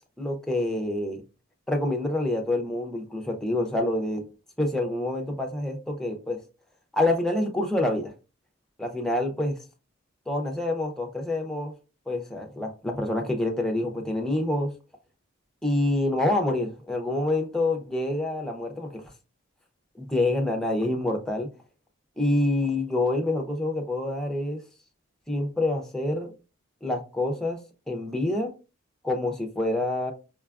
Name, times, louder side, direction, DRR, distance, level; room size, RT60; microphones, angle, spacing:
voice 1, 0.2-1.2 1.7-4.2 4.6-6.4 6.9-8.1 8.8-9.6 10.3-11.7 12.1-14.7 15.6-19.0 20.0-21.5 22.2-24.6 25.3-26.3 26.8-27.6 27.9-28.5 29.0-30.1, left 1 dB, 5° left, 0.6 m, -27 dB
5.2 x 2.3 x 2.4 m
head